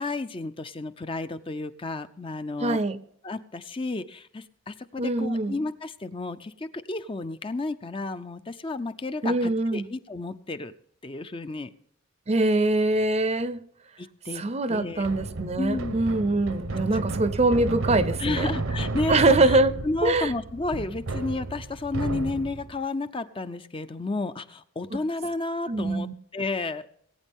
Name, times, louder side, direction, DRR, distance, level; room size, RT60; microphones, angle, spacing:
voice 1, 0.0-2.8 3.2-10.7 11.0-11.7 14.0-14.4 14.7-15.1 15.6-15.9 16.9-17.0 18.2-26.9, left 3 dB, 25° left, 10 dB, 0.5 m, -32 dB
voice 2, 2.6-3.0 5.0-5.6 9.2-9.9 12.3-13.6 14.3-18.5 19.1-19.7 20.0-20.3 24.9-25.0 25.7-26.1, right 2 dB, 30° right, 13 dB, 0.6 m, -23 dB
sound 1, 15.0-22.7, right 2 dB, 70° right, 0.9 m, -32 dB
19.5 x 9.0 x 3.6 m, 0.70 s
head